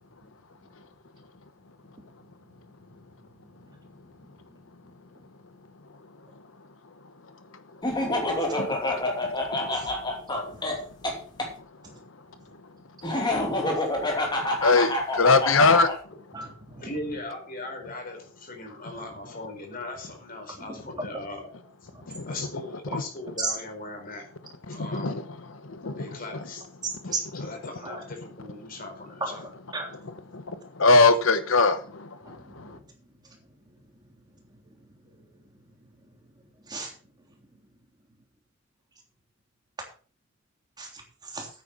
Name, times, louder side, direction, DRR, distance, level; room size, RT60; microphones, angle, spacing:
Laughter, 7.8-11.5 13.0-16.0, left 1 dB, 20° left, 2.8 m, -27 dB
voice 1, 8.5-8.9 9.5-9.8 13.5-13.8 14.6-15.9 22.1-22.3 22.9-23.0 24.7-25.2 25.6-26.0 27.0-27.4 30.3-32.8, left 3 dB, 85° left, 11 dB, 1.1 m, -23 dB
voice 2, 10.5-10.9 11.8-11.9 14.5-14.6 16.3-16.8 20.6-20.8 21.9-22.3 22.9-23.0 23.4-23.5 27.1-27.2 27.8-28.0 29.2-29.4 29.7-29.9 32.2-32.8 33.3-33.4 34.7-34.8 35.0-35.2 36.6-36.9 40.8-41.5, right 3 dB, 20° right, 1 dB, 3.3 m, -36 dB
voice 3, 16.8-21.5 21.8-24.3 24.7-25.2 25.9-26.7 27.0-29.4, left 2 dB, 45° left, 3 dB, 4.5 m, -39 dB
9.3 x 9.3 x 6.0 m, 0.39 s
head